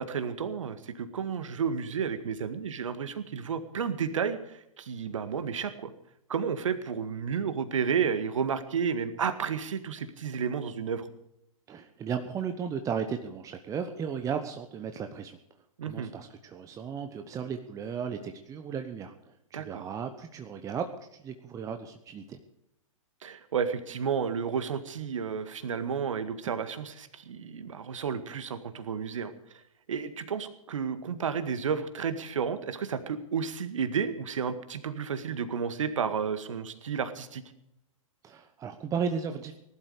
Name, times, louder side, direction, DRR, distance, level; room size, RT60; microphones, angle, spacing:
voice 1, 0.0-5.9 6.3-11.1 15.8-16.1 19.5-19.8 23.2-29.3 29.9-37.4, right 6 dB, 65° right, 11 dB, 1.8 m, -32 dB
voice 2, 11.7-15.4 15.8-20.9 21.1-22.4 38.2-39.6, right 7 dB, 20° right, 7 dB, 1.1 m, -35 dB
19.0 x 12.0 x 5.0 m, 0.82 s
figure-of-eight pair, 110°, 18 cm